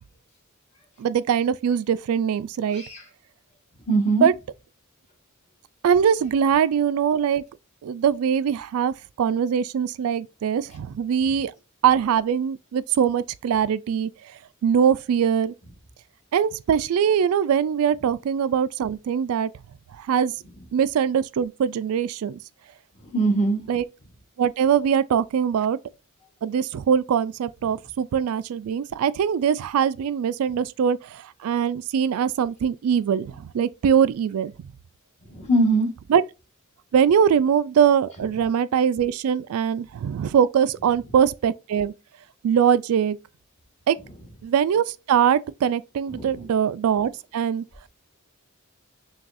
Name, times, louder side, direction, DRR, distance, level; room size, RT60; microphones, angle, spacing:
voice 1, 1.0-2.8 4.2-4.3 5.8-7.4 7.8-11.5 11.8-14.1 14.6-15.5 16.3-19.5 20.0-20.3 20.7-22.4 23.7-23.9 24.4-25.8 26.4-34.7 36.1-36.2 36.9-41.9 42.4-43.2 43.9-44.0 44.4-47.6, right 8 dB, 70° right, 0.3 m, -22 dB
voice 2, 3.9-4.3 23.1-23.6 35.3-35.9 46.1-46.3, right 2 dB, 30° left, 1.2 m, -21 dB
5.9 x 2.3 x 2.5 m
head